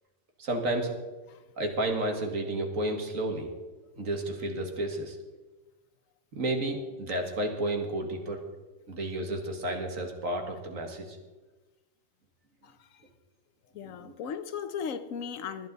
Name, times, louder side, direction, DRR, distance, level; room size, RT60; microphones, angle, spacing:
voice 1, 0.4-1.0 1.6-3.5 4.0-5.2 6.3-8.4 8.9-11.2 13.9-14.1, right 1 dB, 70° right, 2.2 m, -31 dB
voice 2, 12.6-13.0 13.7-15.7, left 7 dB, 75° left, 1.2 m, -37 dB
19.5 x 11.0 x 4.0 m
omnidirectional pair, 1.4 m